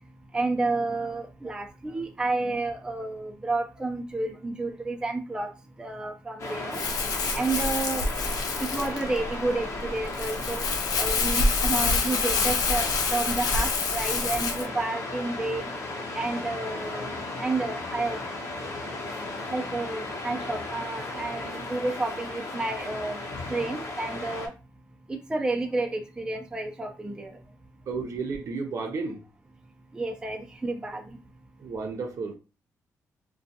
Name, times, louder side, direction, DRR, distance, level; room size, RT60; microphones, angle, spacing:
voice 1, 0.3-5.5 5.8-6.8 7.3-8.0 8.7-10.6 11.0-15.6 16.1-17.1 17.4-18.2 19.5-23.2 23.5-24.5 25.1-27.4 29.9-31.0, right 2 dB, 15° right, 0.5 m, -30 dB
Waves surf, 6.4-24.5, left 2 dB, 55° left, 0.9 m, -35 dB
Crumpling crinkling, 6.7-14.7, left 4 dB, 80° left, 0.5 m, -27 dB
voice 2, 27.9-29.2 31.6-32.4, right 4 dB, 60° right, 0.6 m, -32 dB
2.4 x 2.3 x 2.7 m
cardioid pair, 80°, 6 cm